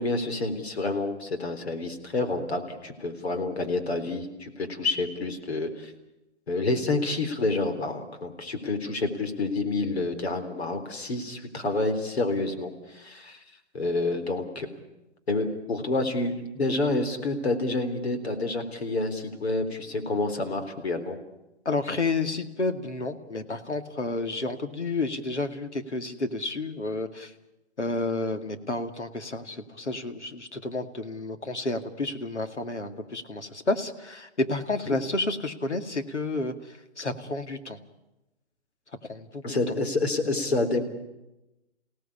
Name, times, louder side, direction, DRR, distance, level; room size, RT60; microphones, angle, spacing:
voice 1, 0.0-5.9 6.5-13.4 13.7-14.7 15.3-21.2 34.9-35.0 39.4-40.8, left 2 dB, 65° left, 6 dB, 3.7 m, -28 dB
voice 2, 21.7-27.3 27.8-36.5 37.0-37.8 39.1-39.4, left 2 dB, 85° left, 7 dB, 2.2 m, -30 dB
28.5 x 17.5 x 8.6 m, 0.97 s
figure-of-eight pair, 130°, 34 cm